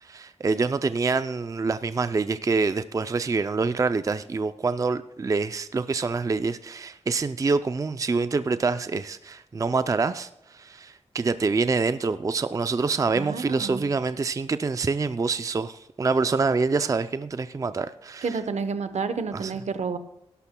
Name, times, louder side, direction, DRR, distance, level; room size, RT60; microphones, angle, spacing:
voice 1, 0.0-18.4 19.3-19.5, right 4 dB, 30° right, 12 dB, 0.4 m, -26 dB
voice 2, 13.1-13.8 18.2-20.0, right 5 dB, 75° right, 10 dB, 0.9 m, -30 dB
18.0 x 11.5 x 2.2 m, 0.83 s
wide cardioid pair, 100°, 12 cm